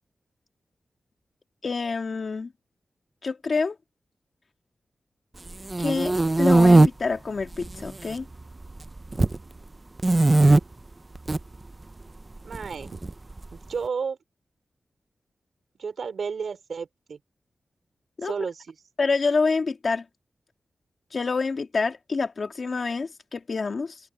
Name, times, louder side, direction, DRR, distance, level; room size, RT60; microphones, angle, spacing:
voice 1, 1.6-2.5 3.2-3.8 5.8-8.3 18.2-18.3 19.0-20.0 21.1-24.0, left 4 dB, 45° left, 2.3 m, -27 dB
sound 1, 5.5-6.9 7.5-8.1 8.4-9.4 10.0-10.6 11.1-11.4 12.5-13.5, right 2 dB, 25° right, 0.5 m, -18 dB
voice 2, 12.4-13.0 13.7-14.2 15.8-17.2 18.2-18.7, right 5 dB, 65° right, 3.0 m, -32 dB
open air
wide cardioid pair, 165°, 0 cm